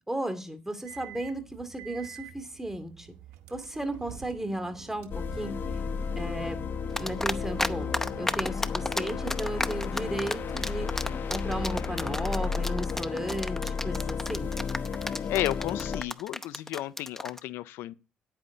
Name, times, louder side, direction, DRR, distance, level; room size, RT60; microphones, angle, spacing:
voice 1, 0.1-3.1 3.5-5.6 6.2-6.6 7.0-7.9 8.2-10.9 11.3-14.5, right 1 dB, 10° right, 2.5 m, -34 dB
sound 1, 0.9-12.6, right 11 dB, 85° right, 0.9 m, -47 dB
sound 2, 5.1-16.0, left 6 dB, 60° left, 1.0 m, -33 dB
sound 3, 7.0-7.7 7.9-17.4, left 1 dB, 10° left, 0.8 m, -31 dB
voice 2, 15.3-17.9, left 15 dB, 80° left, 0.5 m, -32 dB
9.9 x 9.0 x 3.9 m
supercardioid pair, 55°, 4 cm